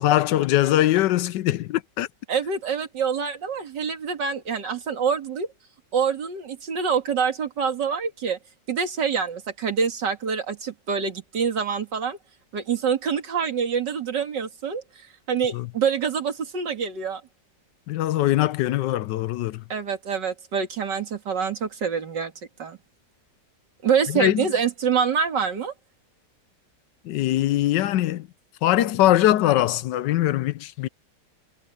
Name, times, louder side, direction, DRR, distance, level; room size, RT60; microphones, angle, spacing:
voice 1, 0.0-2.1 15.5-15.7 17.9-19.6 24.1-24.5 27.0-28.3 28.6-30.9, left 14 dB, 80° left, 1.3 m, -22 dB
voice 2, 2.3-5.5 5.9-8.4 8.7-12.2 12.5-17.2 19.7-22.3 22.6-22.8 23.8-25.7, right 6 dB, 80° right, 2.7 m, -26 dB
omnidirectional pair, 1.9 m